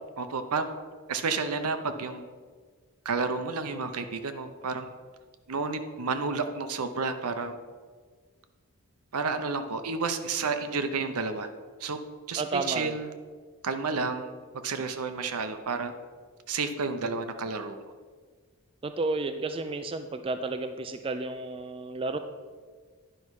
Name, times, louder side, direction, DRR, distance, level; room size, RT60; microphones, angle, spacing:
voice 1, 0.2-0.7 1.1-2.3 3.0-4.9 5.5-7.6 9.1-11.5 11.8-12.0 12.3-13.1 13.6-14.3 14.6-15.9 16.5-17.8, right 4 dB, 85° right, 8 dB, 0.7 m, -31 dB
voice 2, 12.4-13.0 18.8-22.2, right 3 dB, 25° right, 8 dB, 0.3 m, -32 dB
10.0 x 5.5 x 4.7 m, 1.5 s
head